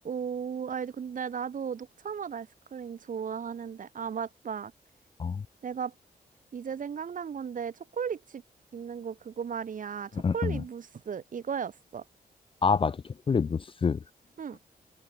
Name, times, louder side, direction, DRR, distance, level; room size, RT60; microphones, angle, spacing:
voice 1, 0.0-4.7 5.6-5.9 6.5-8.4 8.7-12.0 14.4-14.6, right 7 dB, 60° right, 1.5 m, -35 dB
voice 2, 10.1-10.6 12.6-14.0, left 5 dB, 35° left, 0.5 m, -27 dB
wide cardioid pair, 115°, 16 cm